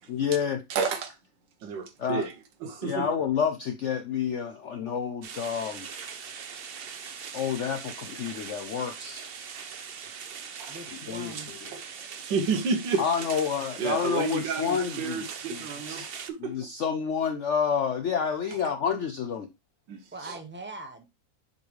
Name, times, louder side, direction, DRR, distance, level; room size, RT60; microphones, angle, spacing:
voice 1, 0.1-0.6 2.0-2.3 2.8-5.9 7.3-9.3 11.1-11.3 13.0-15.2 15.5-15.6 15.9-16.1 16.4-19.5, left 7 dB, 70° left, 0.7 m, -29 dB
voice 2, 0.7-1.1 1.6-2.3 2.6-3.1 10.6-10.8 11.7-11.8 12.2-13.0 13.8-16.5 19.9-20.4, right 5 dB, 90° right, 1.7 m, -30 dB
sound 1, 5.2-16.3, right 7 dB, 60° right, 0.6 m, -41 dB
voice 3, 10.7-11.5 20.1-21.0, right 2 dB, 10° right, 0.9 m, -41 dB
6.9 x 5.3 x 3.1 m
omnidirectional pair, 1.9 m